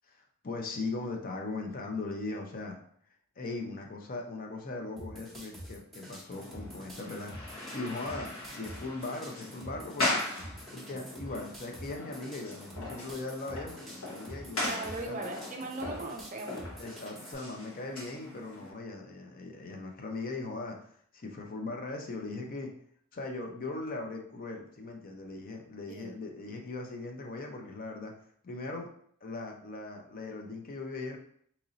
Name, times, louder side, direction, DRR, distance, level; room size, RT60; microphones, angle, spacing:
voice 1, 0.1-2.8 3.4-10.2 10.7-15.2 16.8-22.7 23.1-28.1 28.4-28.9 29.2-31.2, left 3 dB, 40° left, 2 dB, 0.5 m, -39 dB
sound 1, 5.0-17.3, equal, ahead, 0.9 m, -47 dB
sound 2, 6.3-18.7, left 2 dB, 75° left, 1.3 m, -39 dB
voice 2, 14.6-16.7 25.9-26.2, right 2 dB, 35° right, 3 dB, 0.4 m, -39 dB
3.0 x 2.6 x 3.8 m, 0.63 s
head